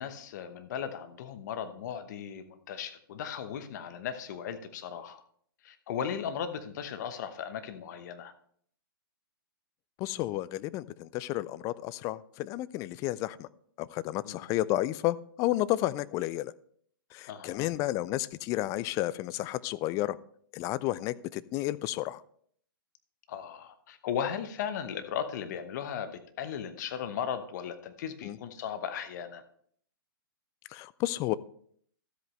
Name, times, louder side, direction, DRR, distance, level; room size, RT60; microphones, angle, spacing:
voice 1, 0.0-5.2 5.6-8.3 14.3-14.4 17.3-17.7 23.3-29.4, left 8 dB, 50° left, 10 dB, 1.0 m, -37 dB
voice 2, 10.0-13.5 13.8-16.5 17.1-20.2 20.5-22.2 28.2-28.4 30.7-31.3, left 16 dB, 25° left, 18 dB, 0.4 m, -31 dB
12.5 x 8.1 x 3.1 m, 0.62 s
figure-of-eight pair, 120°, 12 cm